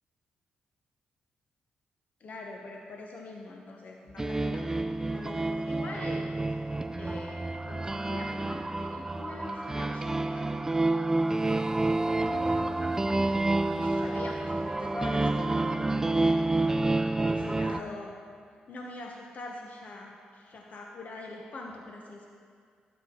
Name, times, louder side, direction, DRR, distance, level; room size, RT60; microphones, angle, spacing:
voice 1, 2.2-4.7 5.1-6.3 7.0-10.6 11.8-13.4 13.7-16.6 17.2-18.2 18.7-22.3, left 2 dB, 55° left, 0 dB, 1.0 m, -43 dB
sound 1, 4.2-17.8, right 2 dB, 15° right, 0.4 m, -29 dB
12.5 x 9.0 x 3.8 m, 2.1 s
cardioid pair, 65°, 3 cm